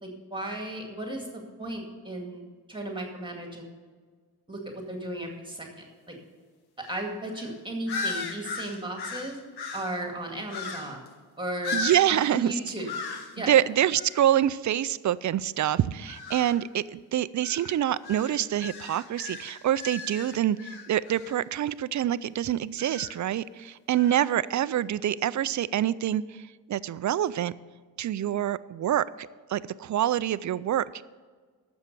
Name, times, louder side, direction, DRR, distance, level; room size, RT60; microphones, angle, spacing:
voice 1, 0.0-2.4 2.7-3.7 4.5-6.2 6.8-9.4 9.7-11.0 11.4-11.8 12.1-12.9 13.3-13.5, right 1 dB, 10° right, 2 dB, 2.1 m, -35 dB
sound 1, 6.8-7.1 7.3-7.5 7.9-10.0 10.5-11.1 11.6-12.4 12.9-13.4 13.9-14.3 16.1-16.6 17.4-21.4 22.8-23.2 24.0-24.3, left 4 dB, 85° left, 1.3 m, -37 dB
voice 2, 11.7-12.5 13.5-27.5 28.0-31.0, right 11 dB, 50° right, 17 dB, 0.4 m, -26 dB
12.0 x 7.1 x 6.7 m, 1.5 s
cardioid pair, 100°, 38 cm